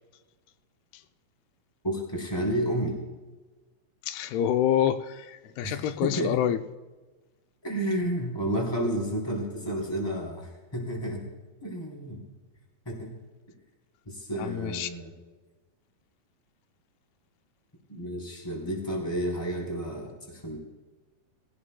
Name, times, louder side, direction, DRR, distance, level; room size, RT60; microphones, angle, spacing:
voice 1, 1.8-3.0 5.6-6.4 7.6-11.3 11.6-12.2 12.8-13.1 14.0-15.1 17.9-20.6, right 1 dB, 5° left, 2.7 m, -31 dB
voice 2, 4.0-6.6 14.4-14.9, left 10 dB, 85° left, 2.6 m, -27 dB
20.0 x 17.0 x 2.2 m
omnidirectional pair, 4.5 m